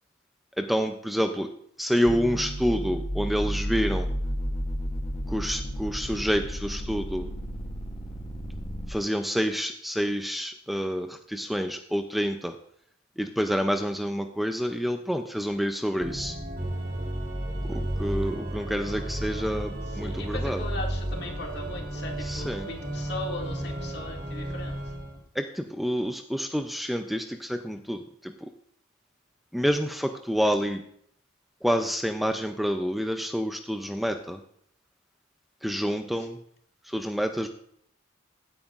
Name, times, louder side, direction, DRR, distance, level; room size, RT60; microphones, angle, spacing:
voice 1, 0.6-1.5 1.8-4.1 5.3-7.3 8.9-12.5 13.2-16.4 17.7-20.6 22.2-22.7 25.4-28.3 29.5-30.8 31.6-34.4 35.6-36.4 36.9-37.5, equal, ahead, 6 dB, 0.4 m, -28 dB
sound 1, 2.0-8.9, equal, 30° left, 0.9 m, -32 dB
Organ, 16.0-25.2, right 1 dB, 45° right, 1.6 m, -33 dB
voice 2, 19.9-24.8 36.1-36.3, left 2 dB, 55° left, 0 dB, 2.1 m, -38 dB
16.0 x 9.0 x 2.4 m, 0.67 s
head